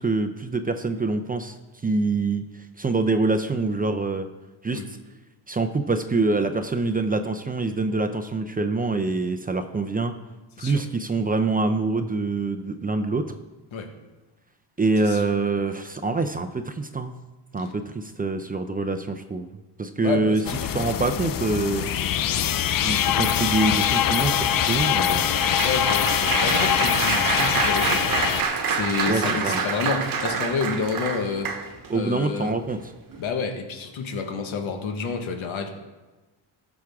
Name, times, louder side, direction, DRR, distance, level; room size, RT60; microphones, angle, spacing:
voice 1, 0.0-1.6 1.8-2.4 2.8-4.3 4.6-5.0 5.5-10.1 10.6-13.3 14.8-17.1 17.5-19.5 19.8-20.4 20.7-21.9 22.8-25.2 29.1-29.6 31.9-32.8, right 3 dB, 20° right, 7 dB, 0.5 m, -25 dB
voice 2, 20.0-20.7 25.6-28.4 28.7-31.5 31.9-32.5 33.2-35.7, left 5 dB, 75° left, 4 dB, 1.6 m, -29 dB
sound 1, 20.4-28.4, left 10 dB, 45° left, 0.6 m, -23 dB
Applause, 23.6-32.0 32.6-32.8 33.1-33.3, right 5 dB, 45° right, 1.1 m, -27 dB
15.0 x 6.2 x 3.6 m, 1.2 s
cardioid pair, 100°, 47 cm